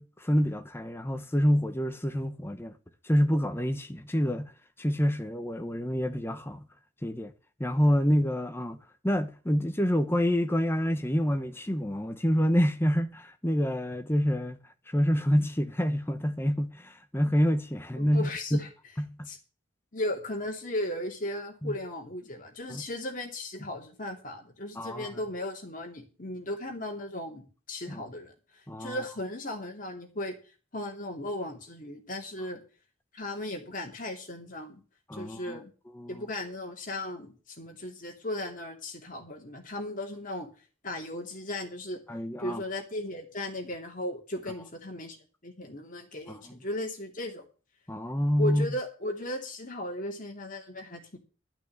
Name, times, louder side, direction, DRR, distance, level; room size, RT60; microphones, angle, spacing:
voice 1, 0.0-2.7 3.0-4.5 4.8-6.7 7.0-7.3 7.6-8.8 9.0-14.6 14.9-18.6 19.0-19.3 21.6-21.8 22.7-22.8 24.8-25.1 27.9-28.0 28.7-29.0 35.1-35.6 35.9-36.3 42.1-42.6 46.3-46.6 47.9-48.7, equal, 10° left, 0.9 m, -27 dB
voice 2, 18.0-18.7 19.3-19.4 19.9-30.3 30.7-32.6 33.1-34.8 35.1-35.7 36.1-40.5 40.8-42.0 42.4-45.2 45.4-47.4 48.4-51.2, left 1 dB, 40° left, 2.8 m, -36 dB
12.0 x 6.1 x 7.8 m
head